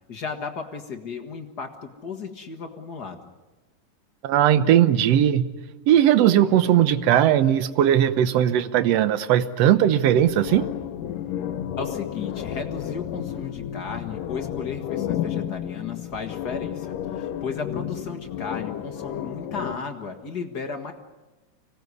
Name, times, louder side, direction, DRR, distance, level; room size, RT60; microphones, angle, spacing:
voice 1, 0.1-3.3 11.8-20.9, left 5 dB, 45° left, 5 dB, 1.4 m, -34 dB
voice 2, 4.2-5.4 5.9-10.7, right 11 dB, 65° right, 12 dB, 1.7 m, -18 dB
sound 1, 10.0-19.8, left 10 dB, 80° left, 2.6 m, -32 dB
25.5 x 18.5 x 9.7 m, 1.2 s
omnidirectional pair, 3.8 m